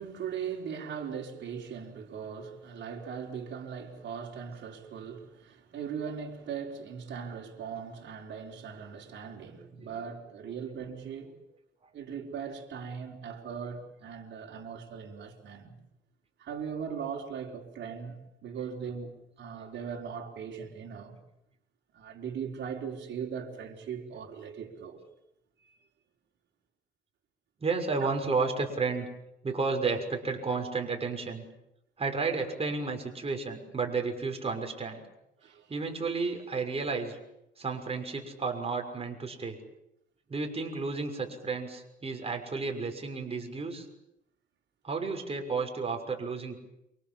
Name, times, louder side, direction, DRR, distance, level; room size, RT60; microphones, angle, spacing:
voice 1, 0.0-11.3 11.9-15.8 16.4-21.2 21.9-25.0 25.6-25.8 28.0-28.2 35.4-35.7, right 7 dB, 65° right, 4.5 m, -39 dB
voice 2, 9.6-10.0 10.4-10.6 13.5-13.6 27.6-29.1 29.4-31.4 32.0-35.0 35.7-37.2 37.6-39.6 40.3-43.9 44.8-46.6, right 4 dB, 30° right, 6.1 m, -32 dB
28.0 x 25.5 x 7.3 m
cardioid pair, 90°, 20 cm